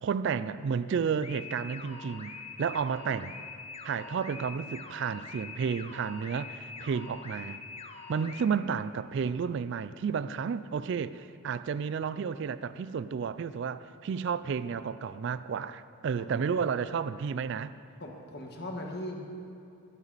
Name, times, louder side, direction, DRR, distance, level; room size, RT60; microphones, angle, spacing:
voice 1, 0.0-2.3 2.6-3.4 3.8-7.6 8.1-17.7, right 6 dB, 55° right, 15 dB, 0.3 m, -32 dB
sound 1, 1.2-8.4, left 4 dB, 30° left, 0.7 m, -44 dB
voice 2, 16.1-16.4 18.0-19.1, left 1 dB, 50° left, 1 dB, 1.5 m, -39 dB
12.5 x 12.5 x 4.1 m, 2.6 s
head